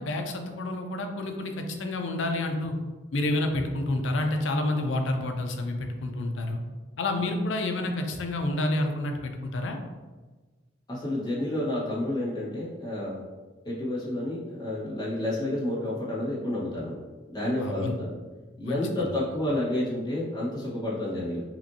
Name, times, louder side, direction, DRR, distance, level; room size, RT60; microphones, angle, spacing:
voice 1, 0.0-2.8 3.1-6.6 7.0-9.8 17.6-17.9 18.6-18.8, left 2 dB, 70° left, 4 dB, 0.5 m, -29 dB
voice 2, 10.9-13.2 13.6-16.9 17.3-18.1 18.6-21.4, left 1 dB, 20° left, -7 dB, 1.2 m, -30 dB
5.7 x 2.5 x 2.7 m, 1.3 s
head